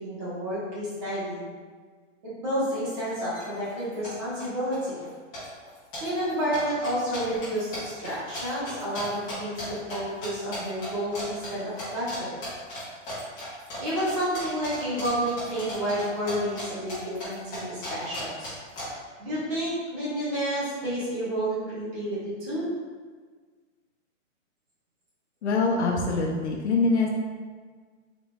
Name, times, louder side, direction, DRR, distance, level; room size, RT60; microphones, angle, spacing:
voice 1, 0.0-1.4 2.2-5.0 6.0-12.4 13.8-18.5 19.2-22.7, equal, 25° right, -9 dB, 1.2 m, -30 dB
sound 1, 2.7-2.8 3.0-3.4 3.7-4.4 4.7-5.1 5.3-10.0 10.2-10.9 11.1-11.5 11.8-12.2 12.4-16.6 16.9-18.8, left 1 dB, 10° left, 0.7 m, -37 dB
voice 2, 25.4-27.1, left 3 dB, 60° left, -1 dB, 0.7 m, -24 dB
3.9 x 3.7 x 2.3 m, 1.5 s
hypercardioid pair, 175°, 39 cm